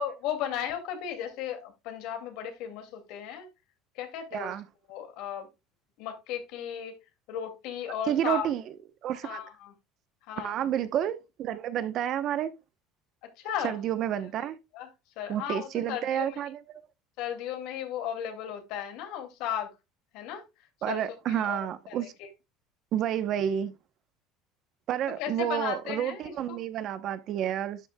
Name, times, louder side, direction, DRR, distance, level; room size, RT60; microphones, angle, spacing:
voice 1, 0.0-3.5 4.0-4.5 4.9-5.5 6.0-7.0 7.3-8.5 9.2-9.7 10.3-10.6 13.4-13.8 14.7-14.9 15.2-16.4 17.2-19.7 20.1-20.4 20.9-22.3 25.2-26.6, left 9 dB, 70° left, 2.3 m, -35 dB
voice 2, 4.3-4.6 8.1-8.6 9.0-9.4 10.4-12.5 13.6-14.6 15.3-16.8 20.8-22.1 22.9-23.7 24.9-27.8, right 10 dB, 50° right, 0.8 m, -30 dB
11.5 x 6.1 x 2.2 m
cardioid pair, 125°, 0 cm